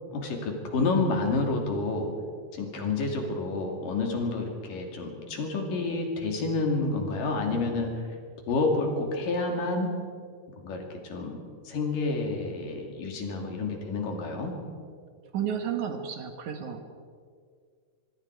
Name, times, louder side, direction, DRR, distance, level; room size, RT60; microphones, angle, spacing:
voice 1, 0.1-2.1 2.5-7.9 8.5-9.9 10.6-11.4 11.7-14.5, left 3 dB, 75° left, 2 dB, 4.3 m, -29 dB
voice 2, 15.3-16.8, right 8 dB, 65° right, 6 dB, 2.8 m, -32 dB
25.5 x 23.5 x 4.8 m, 2.1 s
omnidirectional pair, 3.9 m